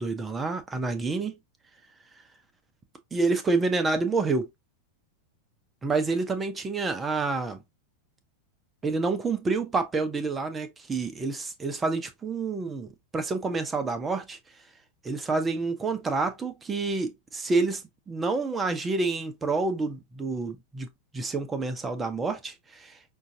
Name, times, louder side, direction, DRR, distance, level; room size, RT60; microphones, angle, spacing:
voice 1, 0.0-1.3 3.1-4.5 5.8-7.6 8.8-14.4 15.0-17.8 18.1-20.9 21.1-22.9, right 3 dB, 15° right, 0.8 m, -28 dB
5.4 x 2.5 x 2.7 m
figure-of-eight pair, 90°, 0 cm